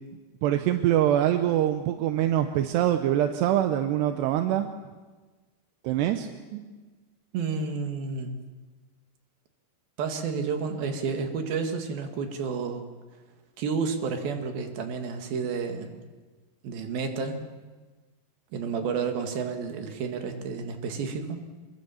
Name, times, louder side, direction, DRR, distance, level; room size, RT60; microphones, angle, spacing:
voice 1, 0.4-4.7 5.8-6.3, right 11 dB, 80° right, 7 dB, 3.0 m, -24 dB
voice 2, 7.3-8.4 10.0-12.8 13.6-16.0 16.6-17.4 18.5-21.4, right 5 dB, 65° right, 5 dB, 3.6 m, -30 dB
24.5 x 23.0 x 7.1 m, 1.3 s
omnidirectional pair, 4.8 m